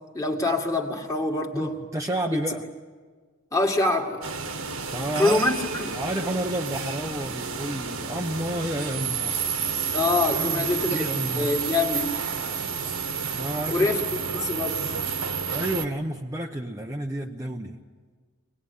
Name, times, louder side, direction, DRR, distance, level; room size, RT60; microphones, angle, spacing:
voice 1, 0.1-1.8 3.5-4.2 5.2-6.0 9.9-12.1 13.7-14.0 14.3-14.9, left 2 dB, 15° left, 2 dB, 2.0 m, -25 dB
voice 2, 1.5-2.6 4.9-5.4 5.9-9.4 10.2-11.5 13.3-13.9 15.5-17.8, right 1 dB, 15° right, 2 dB, 0.8 m, -30 dB
sound 1, 4.2-15.8, right 6 dB, 65° right, 1.5 m, -30 dB
24.0 x 19.5 x 9.7 m, 1.5 s
head